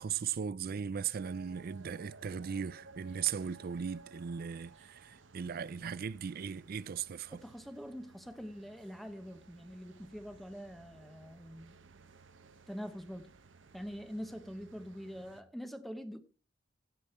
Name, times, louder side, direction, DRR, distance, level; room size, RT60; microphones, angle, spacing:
voice 1, 0.0-7.4, right 7 dB, 50° right, 0.4 m, -38 dB
sound 1, 1.2-15.4, right 4 dB, 70° right, 1.0 m, -58 dB
voice 2, 7.3-11.8 12.7-13.3 13.7-16.2, equal, ahead, 0.8 m, -44 dB
16.0 x 5.4 x 4.4 m
head